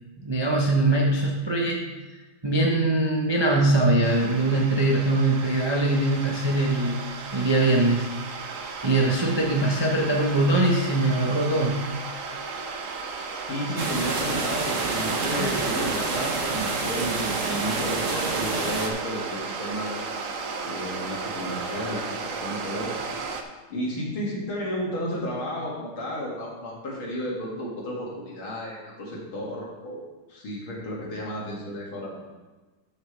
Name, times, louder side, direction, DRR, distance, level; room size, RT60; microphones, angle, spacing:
voice 1, 0.2-1.8 2.4-7.0 7.3-8.1 8.4-8.5 8.8-11.9 13.1-13.3 15.3-15.5, right 2 dB, 25° right, -2 dB, 0.5 m, -22 dB
sound 1, 4.0-23.4, right 4 dB, 65° right, 0.8 m, -35 dB
voice 2, 13.3-20.0 20.6-23.0 23.7-30.0 30.3-32.3, equal, 70° left, -4 dB, 3.0 m, -32 dB
sound 2, 13.8-18.9, right 4 dB, 45° right, 1.2 m, -28 dB
12.5 x 6.3 x 3.4 m, 1.2 s
omnidirectional pair, 2.3 m